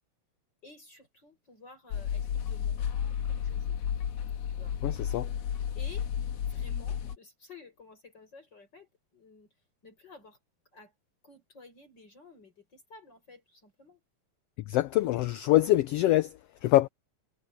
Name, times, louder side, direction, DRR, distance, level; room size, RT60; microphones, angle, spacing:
voice 1, 0.6-3.8 4.5-4.8 5.7-6.1 6.4-9.6 9.8-10.4 10.7-10.9 11.2-14.0, left 3 dB, 35° left, 6.9 m, -53 dB
sound 1, 1.9-7.2, left 8 dB, 65° left, 2.2 m, -32 dB
voice 2, 4.8-5.3 14.7-16.9, left 15 dB, 90° left, 1.3 m, -25 dB
omnidirectional pair, 3.4 m